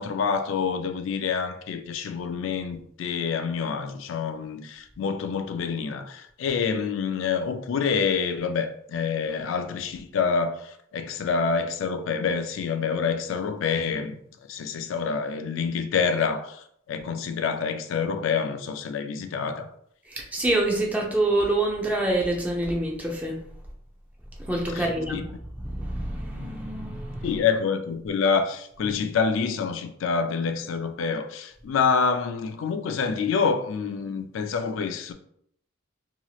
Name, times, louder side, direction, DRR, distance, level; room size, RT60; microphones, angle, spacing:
voice 1, 0.0-14.2 14.5-19.7 24.7-25.2 27.2-35.1, left 5 dB, 70° left, 0.3 m, -27 dB
voice 2, 20.1-23.4 24.5-25.3 25.6-27.3, right 2 dB, 10° right, 0.5 m, -26 dB
3.0 x 2.9 x 2.3 m
head